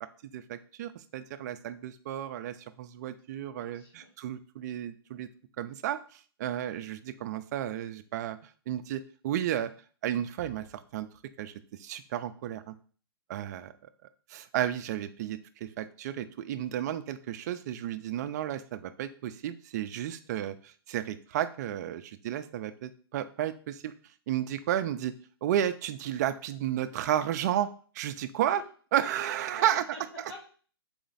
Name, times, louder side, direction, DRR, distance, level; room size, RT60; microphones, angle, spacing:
voice 1, 0.3-5.3 5.6-8.4 8.7-9.7 10.0-10.6 10.9-11.1 11.4-11.5 11.8-12.7 13.3-13.7 14.3-23.9 24.3-25.1 25.4-28.6 28.9-29.8, right 11 dB, 45° right, 12 dB, 0.4 m, -32 dB
voice 2, 3.6-4.1 28.4-28.6 29.5-30.4, left 2 dB, 80° left, -4 dB, 2.4 m, -46 dB
4.2 x 2.9 x 4.0 m, 0.41 s
hypercardioid pair, 130°, 13 cm